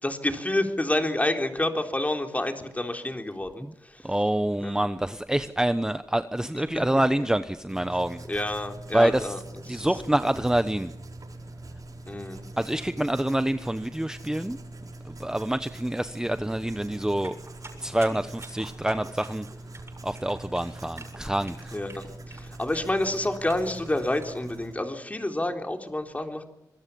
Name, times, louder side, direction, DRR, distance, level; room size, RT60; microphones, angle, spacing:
voice 1, 0.0-4.1 4.6-5.0 6.5-6.8 7.2-7.3 7.9-8.0 8.3-9.4 9.7-9.8 12.1-12.5 21.7-26.4, left 1 dB, 20° left, 4 dB, 3.7 m, -29 dB
voice 2, 4.0-8.2 8.9-9.3 9.7-10.9 12.6-14.6 15.0-17.4 17.8-19.5 20.0-21.7, right 1 dB, 10° right, 10 dB, 1.0 m, -26 dB
Writing, 7.7-24.7, right 2 dB, 55° right, 6.8 m, -43 dB
sound 1, 17.2-24.4, right 3 dB, 40° right, 7.3 m, -48 dB
25.0 x 22.0 x 7.1 m, 0.90 s
wide cardioid pair, 80°, 7 cm